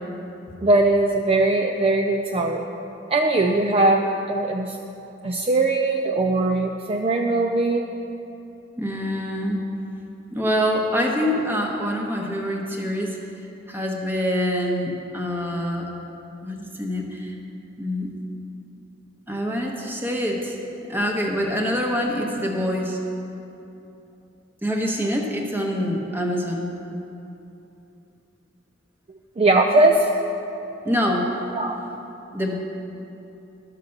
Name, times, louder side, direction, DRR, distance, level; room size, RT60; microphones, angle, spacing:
voice 1, 0.6-2.6 3.1-4.8 5.2-7.9 29.4-30.1 31.5-31.8, right 2 dB, 30° right, 2 dB, 0.4 m, -20 dB
voice 2, 8.8-9.6 10.3-13.2 13.7-15.9 16.4-17.3 17.8-18.1 19.3-20.6 20.9-23.0 24.6-26.7 30.8-31.3 32.3-32.5, equal, 10° right, 0 dB, 1.1 m, -25 dB
12.0 x 5.8 x 6.5 m, 2.9 s
head